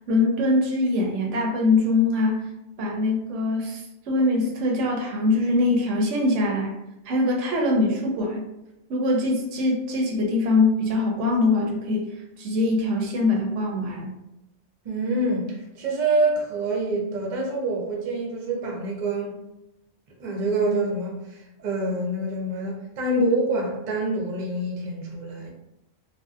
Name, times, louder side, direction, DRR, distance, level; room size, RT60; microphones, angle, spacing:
voice 1, 0.1-2.5 2.8-6.7 7.1-8.4 8.9-12.1 12.4-14.1, left 2 dB, 80° right, 1 dB, 0.9 m, -23 dB
voice 2, 14.8-19.3 20.2-25.5, right 2 dB, 50° right, -1 dB, 0.6 m, -26 dB
2.6 x 2.0 x 2.3 m, 0.90 s
omnidirectional pair, 1.2 m